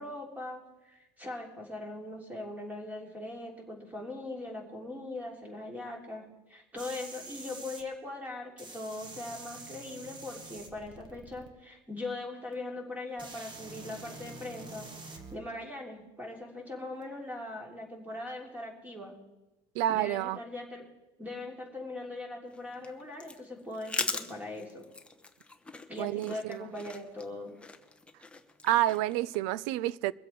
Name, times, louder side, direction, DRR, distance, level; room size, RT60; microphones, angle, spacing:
voice 1, 0.0-19.1 19.9-20.8 21.2-24.8 25.9-27.5, left 2 dB, 10° right, 3.2 m, -40 dB
sound 1, 6.8-7.8 8.6-11.5 12.5-12.6 13.2-15.3 17.0-17.1, right 3 dB, 30° right, 1.7 m, -46 dB
voice 2, 19.8-20.4 26.0-26.6 28.6-30.1, right 14 dB, 80° right, 0.5 m, -29 dB
sound 2, 22.5-29.4, left 2 dB, 5° left, 0.8 m, -41 dB
23.5 x 7.8 x 4.6 m
cardioid pair, 135°, 17 cm